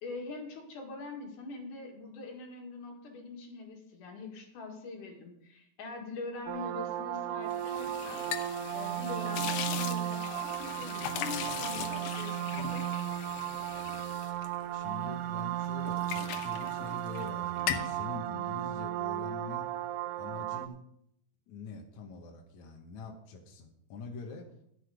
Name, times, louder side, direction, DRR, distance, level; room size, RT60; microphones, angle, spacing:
voice 1, 0.0-8.2 8.7-12.9, left 3 dB, 50° left, 2 dB, 3.0 m, -43 dB
sound 1, 6.5-20.7, right 13 dB, 80° right, 2.4 m, -35 dB
sound 2, 7.5-15.3 15.6-17.3 17.6-18.0, left 11 dB, 85° left, 2.1 m, -39 dB
voice 2, 14.6-19.7 20.2-20.8 21.5-24.5, left 4 dB, 70° left, 2 dB, 1.7 m, -44 dB
13.0 x 8.0 x 5.1 m, 0.74 s
omnidirectional pair, 5.2 m